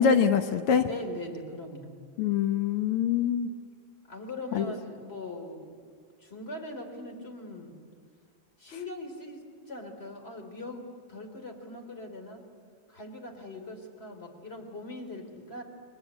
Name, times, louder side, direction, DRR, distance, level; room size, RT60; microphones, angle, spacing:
voice 1, 0.0-0.9 2.2-3.5 4.6-4.7, left 7 dB, 80° left, 9 dB, 1.9 m, -24 dB
voice 2, 0.8-2.0 4.1-5.8 6.2-7.8 8.6-12.4 12.9-15.6, left 2 dB, 25° left, 4 dB, 3.5 m, -41 dB
29.5 x 22.5 x 8.1 m, 2.1 s
omnidirectional pair, 2.4 m